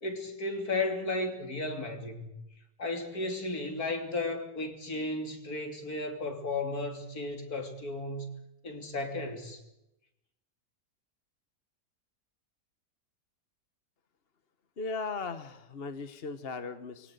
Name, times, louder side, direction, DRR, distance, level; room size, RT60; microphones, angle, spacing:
voice 1, 0.0-2.3 2.8-8.3 8.6-9.6, left 2 dB, 60° left, 5 dB, 3.5 m, -34 dB
voice 2, 14.8-17.1, left 4 dB, 40° left, 10 dB, 1.2 m, -37 dB
24.0 x 17.0 x 8.1 m, 0.89 s
omnidirectional pair, 1.8 m